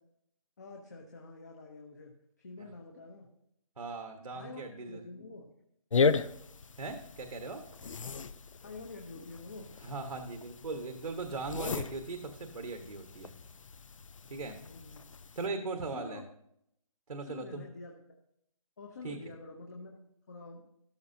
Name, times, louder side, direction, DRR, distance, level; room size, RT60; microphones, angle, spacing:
voice 1, 0.6-3.3 4.3-5.5 8.6-9.7 14.6-15.0 15.9-16.2 17.2-18.1 18.8-20.0 20.3-20.6, left 3 dB, 30° left, 0 dB, 0.9 m, -47 dB
voice 2, 3.8-5.0 6.8-7.6 9.8-13.3 14.3-14.6 15.3-16.2 17.1-17.7 19.0-19.2, right 3 dB, 85° right, 5 dB, 1.6 m, -39 dB
sound 1, 5.9-15.5, left 5 dB, 60° left, 0.6 m, -36 dB
13.5 x 13.0 x 2.8 m, 0.76 s
hypercardioid pair, 175°, 19 cm